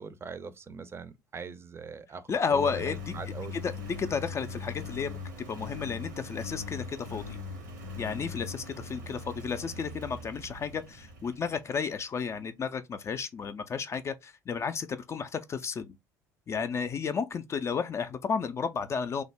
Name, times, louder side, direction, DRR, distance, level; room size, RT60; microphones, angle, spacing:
voice 1, 0.0-3.6, right 5 dB, 25° right, 0.5 m, -42 dB
voice 2, 2.3-3.1 3.6-5.2 5.5-7.4 8.0-15.9 16.5-19.2, left 6 dB, 30° left, 0.3 m, -32 dB
Engine, 2.5-11.9, left 3 dB, 75° right, 0.8 m, -41 dB
3.2 x 2.0 x 3.4 m
figure-of-eight pair, 60°, 10 cm